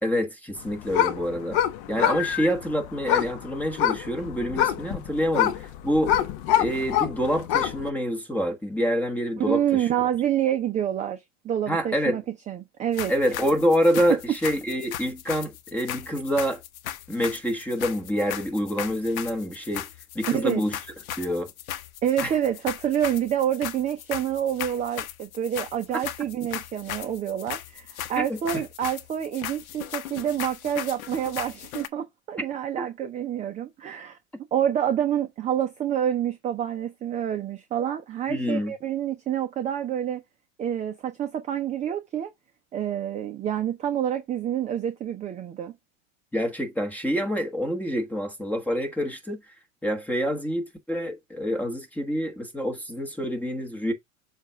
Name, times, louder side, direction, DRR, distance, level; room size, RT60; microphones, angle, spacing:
voice 1, 0.0-1.6 1.9-6.1 6.6-9.9 11.7-12.2 13.1-16.6 17.1-19.9 20.1-20.8 21.2-21.5 22.2-22.3 28.2-28.6 38.3-38.7 46.3-49.4 49.8-53.9, equal, 5° left, 1.3 m, -27 dB
sound 1, 0.6-7.9, left 11 dB, 50° left, 0.8 m, -26 dB
voice 2, 9.4-13.1 20.3-20.6 22.0-34.2 34.5-40.2 40.6-42.3 42.7-45.7, right 10 dB, 15° right, 0.6 m, -27 dB
sound 2, 12.9-31.9, left 12 dB, 80° left, 0.9 m, -37 dB
7.3 x 2.5 x 5.6 m
supercardioid pair, 135°, 42 cm